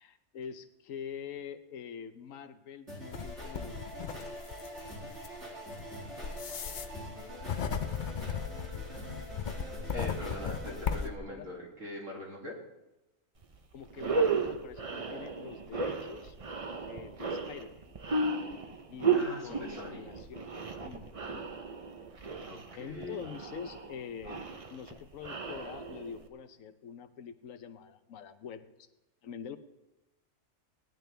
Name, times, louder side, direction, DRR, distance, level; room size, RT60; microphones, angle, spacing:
voice 1, 0.0-3.8 9.9-10.1 10.7-11.5 13.7-16.4 16.8-17.9 18.9-21.5 22.7-28.9 29.2-29.6, left 7 dB, 85° left, 10 dB, 1.2 m, -45 dB
sound 1, 2.9-11.0, right 1 dB, 60° right, 5.0 m, -45 dB
sound 2, 3.1-11.2, left 7 dB, 50° left, 0.6 m, -37 dB
voice 2, 9.9-12.6 19.1-20.1 22.4-23.3, left 1 dB, 75° right, -2 dB, 3.0 m, -42 dB
sound 3, 13.4-13.6 13.9-26.3, right 4 dB, 35° right, 0.7 m, -34 dB
18.0 x 10.5 x 3.4 m, 0.97 s
omnidirectional pair, 1.3 m